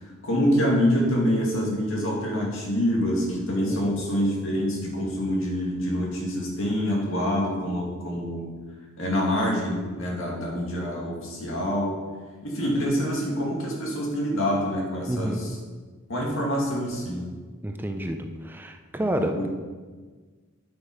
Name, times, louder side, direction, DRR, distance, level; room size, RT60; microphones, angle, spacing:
voice 1, 0.0-8.4 9.0-11.9 12.4-15.5 16.1-17.2 19.0-19.6, equal, 70° left, -2 dB, 2.2 m, -26 dB
voice 2, 15.1-15.5 17.6-19.4, right 1 dB, 10° right, 5 dB, 0.4 m, -29 dB
9.3 x 5.7 x 4.9 m, 1.4 s
head